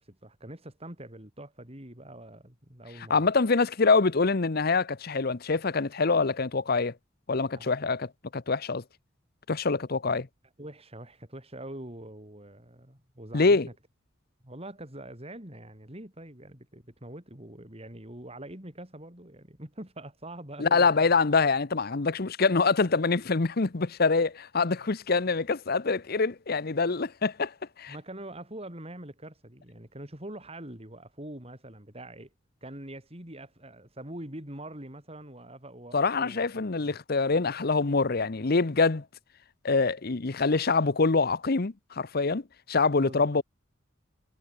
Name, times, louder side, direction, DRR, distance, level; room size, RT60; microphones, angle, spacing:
voice 1, 0.0-3.2 7.5-7.7 10.6-13.6 14.4-21.1 27.9-32.3 32.6-36.6 43.0-43.4, right 1 dB, 30° right, 4.9 m, -44 dB
voice 2, 3.1-6.9 7.3-8.8 9.5-10.3 13.3-13.7 20.6-27.5 27.8-27.9 35.9-39.0 39.6-42.4 42.7-43.4, left 4 dB, 50° left, 0.8 m, -25 dB
head